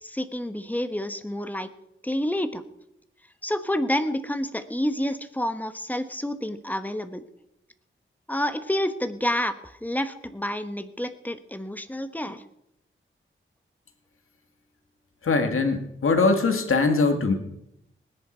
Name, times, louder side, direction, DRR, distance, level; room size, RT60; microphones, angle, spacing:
voice 1, 0.0-1.7 2.0-2.6 3.4-7.2 8.3-12.4, left 1 dB, 10° left, 10 dB, 1.2 m, -29 dB
voice 2, 15.2-17.3, left 3 dB, 80° left, 6 dB, 2.0 m, -22 dB
19.5 x 10.5 x 4.5 m, 0.80 s
wide cardioid pair, 85°, 21 cm